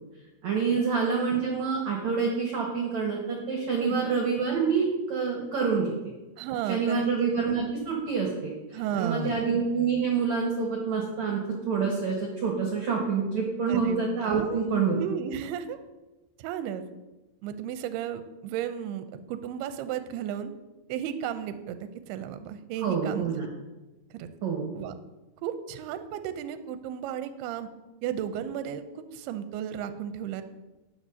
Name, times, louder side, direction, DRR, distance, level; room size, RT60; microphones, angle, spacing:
voice 1, 0.4-5.9 6.7-8.5 8.9-15.0 22.8-23.5 24.4-24.7, right 5 dB, 65° right, -1 dB, 2.0 m, -27 dB
voice 2, 6.4-7.1 8.7-9.5 13.7-14.6 15.0-15.8 16.4-16.8 17.4-20.5 20.9-21.8 22.1-23.5 24.1-24.3 24.7-24.9 25.4-27.7 28.0-30.4, right 9 dB, 80° right, 9 dB, 2.5 m, -34 dB
12.5 x 9.7 x 2.7 m, 1.1 s
omnidirectional pair, 4.8 m